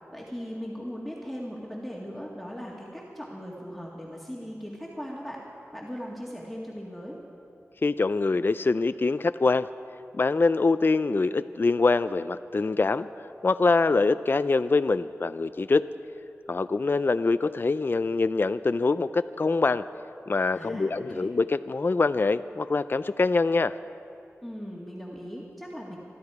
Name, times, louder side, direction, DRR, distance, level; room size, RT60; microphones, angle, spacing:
voice 1, 0.1-5.4 5.7-7.2 20.5-21.3 24.4-26.0, equal, ahead, -4 dB, 2.1 m, -38 dB
voice 2, 7.8-9.7 10.1-13.1 13.4-15.9 16.5-19.9 20.3-23.7, left 3 dB, 45° left, 12 dB, 0.4 m, -24 dB
25.0 x 12.0 x 4.8 m, 2.6 s
cardioid pair, 50°, 5 cm